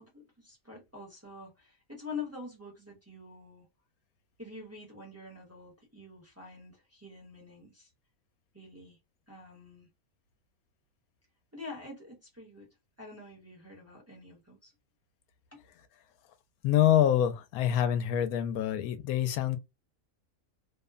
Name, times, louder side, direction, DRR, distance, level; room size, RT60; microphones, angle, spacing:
voice 1, 0.0-3.7 4.4-7.9 8.5-9.0 9.3-9.9 11.5-12.7 13.0-14.7 15.5-15.6, left 4 dB, 10° right, 0.9 m, -46 dB
voice 2, 16.6-19.6, left 10 dB, 90° left, 1.1 m, -26 dB
2.8 x 2.1 x 2.3 m
omnidirectional pair, 1.5 m